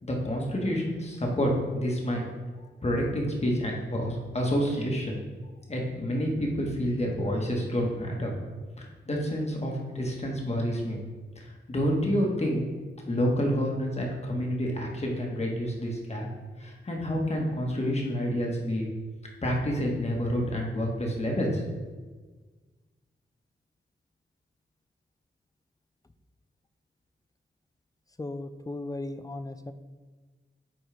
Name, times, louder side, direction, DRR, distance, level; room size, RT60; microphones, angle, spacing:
voice 1, 0.0-2.2 2.8-5.2 5.7-8.3 8.8-11.0 11.4-12.6 13.1-16.3 16.6-18.9 19.4-21.6, equal, 35° left, -1 dB, 1.5 m, -28 dB
voice 2, 28.2-29.7, left 2 dB, 20° left, 10 dB, 0.4 m, -36 dB
8.8 x 4.2 x 3.4 m, 1.4 s
wide cardioid pair, 85°, 19 cm